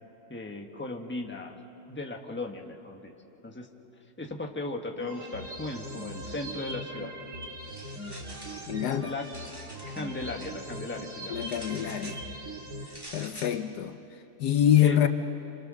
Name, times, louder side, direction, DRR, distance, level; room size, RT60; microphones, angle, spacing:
voice 1, 0.3-1.6 1.9-3.1 3.4-3.7 4.2-7.1 9.1-9.3 9.9-11.4 14.8-15.1, left 2 dB, 5° left, 2 dB, 1.3 m, -37 dB
sound 1, 5.0-13.0, equal, 65° right, 2.9 m, -40 dB
sound 2, 7.6-8.7 9.1-10.5 11.4-12.3 12.9-13.6, right 1 dB, 15° right, 2.1 m, -47 dB
voice 2, 8.7-9.1 11.3-12.2 13.1-14.0 14.4-15.1, left 10 dB, 70° left, 9 dB, 1.3 m, -25 dB
28.5 x 27.0 x 6.5 m, 3.0 s
omnidirectional pair, 1.9 m